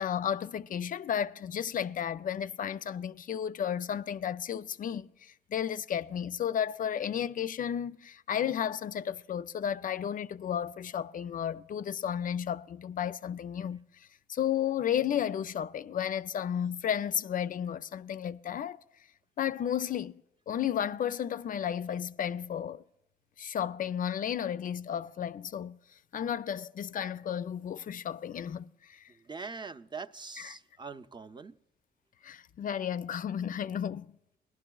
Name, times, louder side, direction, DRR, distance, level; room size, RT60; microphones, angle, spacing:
voice 1, 0.0-18.8 19.4-22.8 23.4-25.8 26.1-29.1 30.4-30.6 32.2-34.2, left 9 dB, 50° left, 0.4 m, -33 dB
voice 2, 29.1-31.6, right 4 dB, 25° right, 0.5 m, -43 dB
19.5 x 11.5 x 2.3 m
cardioid pair, 80°, 18 cm